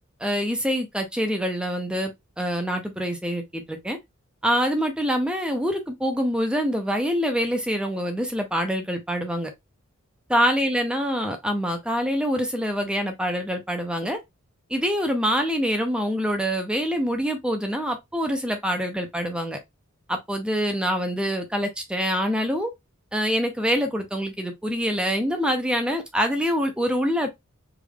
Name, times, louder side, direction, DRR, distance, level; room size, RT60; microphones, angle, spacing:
voice 1, 0.2-2.1 2.4-4.0 4.4-9.5 10.3-14.2 14.7-19.6 20.1-22.7 23.1-27.3, equal, 5° right, 0.6 m, -25 dB
3.7 x 3.3 x 2.3 m
head